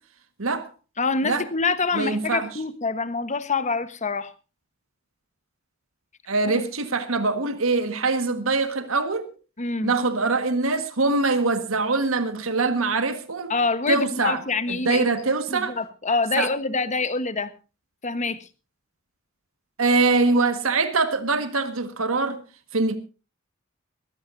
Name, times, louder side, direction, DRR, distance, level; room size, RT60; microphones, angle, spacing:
voice 1, 1.0-4.3 6.5-6.6 9.6-9.9 13.5-15.0 15.5-17.5 18.0-18.5, left 4 dB, 35° left, 1.2 m, -26 dB
voice 2, 1.9-2.5 6.3-9.3 9.8-13.5 13.9-14.4 14.7-15.8 16.4-16.5 19.8-22.4 22.7-23.0, right 3 dB, 85° right, 1.6 m, -23 dB
22.0 x 15.0 x 2.7 m
head